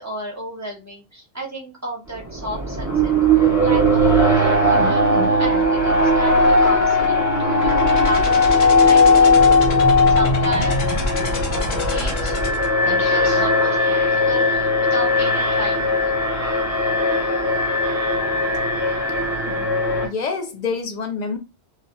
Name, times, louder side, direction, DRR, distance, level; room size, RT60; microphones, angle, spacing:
voice 1, 0.0-3.1 3.6-5.0 5.4-9.6 10.1-10.8 11.5-12.4 12.9-16.1, right 1 dB, 20° right, 0.6 m, -32 dB
Alarm, 2.2-20.1, left 1 dB, 15° left, 1.1 m, -18 dB
sound 1, 4.1-13.4, left 2 dB, 65° left, 1.0 m, -26 dB
voice 2, 19.5-21.4, left 5 dB, 50° left, 0.5 m, -28 dB
2.3 x 2.1 x 2.6 m
omnidirectional pair, 1.2 m